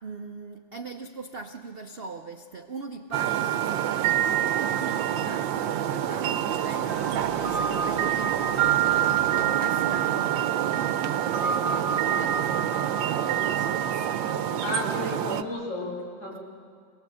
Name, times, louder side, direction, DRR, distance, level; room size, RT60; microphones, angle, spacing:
voice 1, 0.0-15.2 16.3-16.4, right 4 dB, 55° right, 5 dB, 0.6 m, -41 dB
sound 1, 3.1-15.4, right 10 dB, 75° right, 1.4 m, -26 dB
Squeak, 5.6-10.0 10.6-11.1, left 1 dB, 90° left, 4.3 m, -47 dB
voice 2, 14.6-16.4, left 1 dB, 65° left, -3 dB, 5.8 m, -32 dB
27.0 x 19.0 x 7.7 m, 2.2 s
omnidirectional pair, 2.2 m